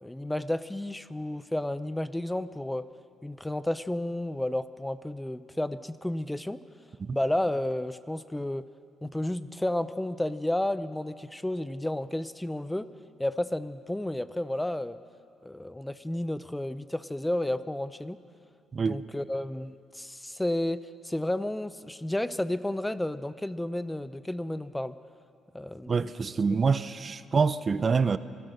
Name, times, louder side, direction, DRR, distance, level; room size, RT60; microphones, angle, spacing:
voice 1, 0.0-2.9 3.2-6.6 7.1-8.7 9.0-12.9 13.2-15.0 15.4-18.2 18.8-25.0 25.5-26.1, left 1 dB, 10° left, 14 dB, 0.6 m, -32 dB
voice 2, 25.9-28.2, right 5 dB, 40° right, 14 dB, 0.7 m, -26 dB
26.0 x 16.5 x 6.6 m, 2.3 s
cardioid pair, 90°, 0 cm